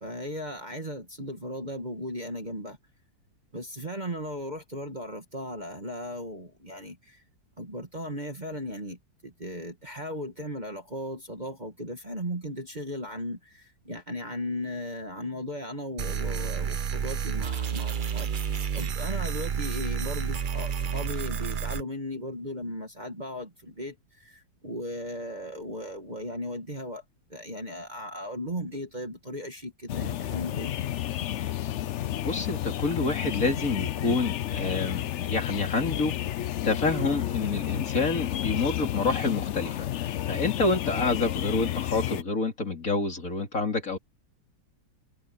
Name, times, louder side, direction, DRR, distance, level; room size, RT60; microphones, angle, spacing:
voice 1, 0.0-2.8 3.5-7.2 7.6-27.0 27.3-30.7, equal, 25° right, 2.1 m, -37 dB
sound 1, 16.0-21.8, right 7 dB, 65° right, 0.5 m, -30 dB
sound 2, 29.9-42.2, left 12 dB, 85° left, 0.6 m, -31 dB
voice 2, 32.2-36.2 36.6-44.0, left 3 dB, 45° left, 3.5 m, -28 dB
omnidirectional pair, 1.9 m